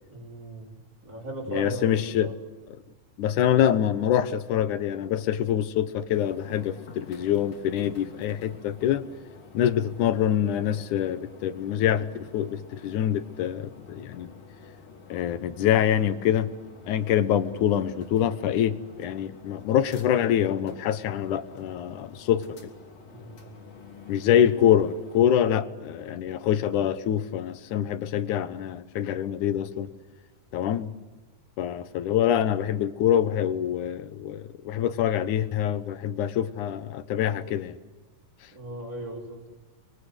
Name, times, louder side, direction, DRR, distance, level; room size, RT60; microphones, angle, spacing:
voice 1, 0.1-0.7 1.0-1.9 2.2-2.3 23.1-23.7 30.6-30.9 38.5-39.5, right 2 dB, 30° right, 0 dB, 6.1 m, -38 dB
voice 2, 1.5-2.3 3.2-9.0 9.5-14.3 15.1-16.5 16.9-22.6 24.1-29.9 30.5-30.9 31.6-37.8, left 10 dB, 85° left, 13 dB, 2.6 m, -25 dB
sound 1, 6.1-25.2, left 5 dB, 60° left, 4.0 m, -49 dB
29.5 x 23.0 x 8.2 m, 1.3 s
omnidirectional pair, 3.4 m